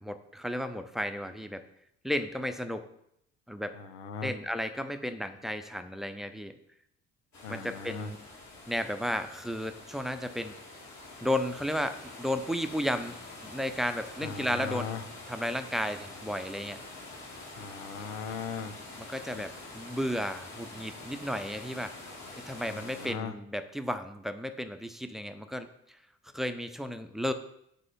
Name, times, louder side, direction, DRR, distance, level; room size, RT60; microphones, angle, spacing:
voice 1, 0.0-1.6 2.0-2.8 3.5-3.8 4.2-6.5 7.5-8.2 8.7-10.5 11.2-13.2 13.4-14.9 15.3-16.8 19.1-21.9 22.5-25.7 26.3-27.3, equal, ahead, 9 dB, 0.7 m, -33 dB
voice 2, 3.7-4.3 7.4-8.1 14.2-15.0 17.6-18.8 19.3-19.4 22.6-23.3, left 6 dB, 80° left, 9 dB, 0.7 m, -38 dB
sound 1, 7.3-23.1, left 2 dB, 50° left, 2.6 m, -46 dB
9.2 x 3.4 x 5.3 m, 0.75 s
figure-of-eight pair, 50°, 36 cm